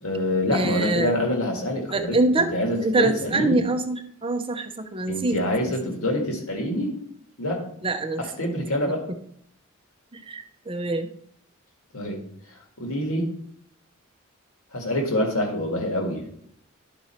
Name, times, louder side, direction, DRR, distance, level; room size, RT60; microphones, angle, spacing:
voice 1, 0.0-3.6 5.0-6.9 7.4-7.6 8.2-9.0 11.9-12.2 12.8-13.3 14.7-16.3, left 1 dB, 80° left, 2 dB, 1.9 m, -26 dB
voice 2, 0.5-1.1 1.9-5.9 7.8-8.2 10.1-11.1, right 2 dB, 25° right, 7 dB, 0.6 m, -25 dB
11.5 x 4.3 x 4.4 m, 0.68 s
head